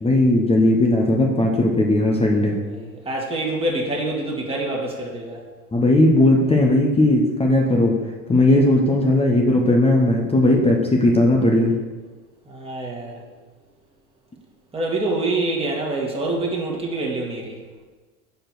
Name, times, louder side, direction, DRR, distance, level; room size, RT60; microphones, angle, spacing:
voice 1, 0.0-2.6 5.7-8.0 8.3-11.7, left 1 dB, 15° left, 0 dB, 0.8 m, -17 dB
voice 2, 2.6-5.4 12.5-13.2 14.7-17.6, right 2 dB, 10° right, -2 dB, 1.7 m, -26 dB
4.9 x 4.6 x 6.0 m, 1.3 s
hypercardioid pair, 90°, 45 cm